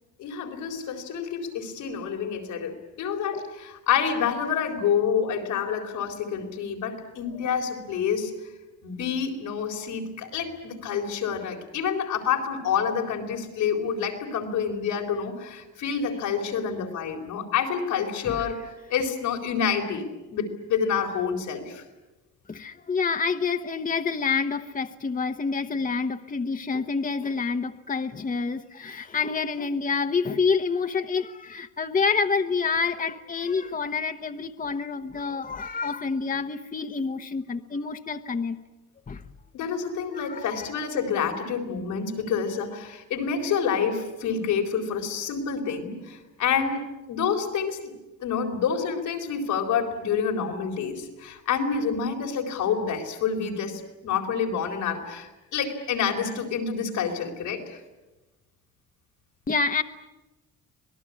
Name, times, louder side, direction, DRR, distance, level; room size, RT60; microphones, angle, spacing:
voice 1, 0.2-8.3 8.8-18.6 18.9-20.0 20.3-21.8 39.5-47.8 48.2-57.8, left 7 dB, 90° left, 4.2 m, -28 dB
voice 2, 22.5-38.6 39.1-39.2 40.1-40.7 59.5-59.8, left 5 dB, 25° left, 1.1 m, -28 dB
26.0 x 19.0 x 9.8 m
cardioid pair, 90°, 30 cm